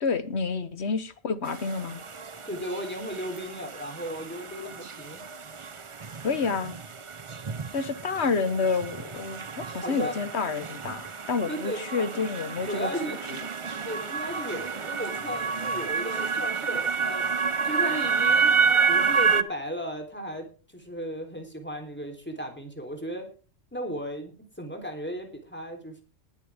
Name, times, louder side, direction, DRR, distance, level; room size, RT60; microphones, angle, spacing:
voice 1, 0.0-2.0 6.2-6.7 7.7-13.4, left 4 dB, 80° left, 1.5 m, -29 dB
sound 1, 1.5-19.4, right 5 dB, 35° right, 0.7 m, -29 dB
voice 2, 2.5-5.3 9.7-10.2 11.4-11.9 12.7-13.2 13.6-17.3 17.6-20.5 20.7-23.3 23.7-26.0, equal, 10° left, 3.5 m, -35 dB
19.5 x 10.0 x 3.6 m
omnidirectional pair, 1.1 m